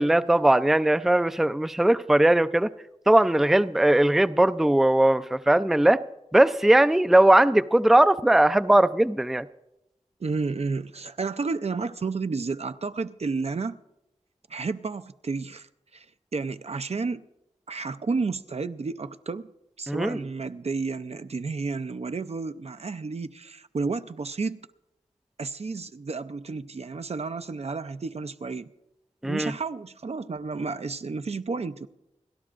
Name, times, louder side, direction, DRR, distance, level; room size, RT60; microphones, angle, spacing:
voice 1, 0.0-2.7 3.1-6.0 6.3-9.5 19.9-20.2 29.2-29.5, right 1 dB, 5° right, 0.4 m, -19 dB
voice 2, 10.2-13.8 14.5-15.7 15.9-16.1 16.3-17.2 17.7-19.5 19.8-24.7 25.4-28.7 29.2-31.9, right 4 dB, 60° right, 0.5 m, -31 dB
30.0 x 12.0 x 2.5 m
wide cardioid pair, 45°, 12 cm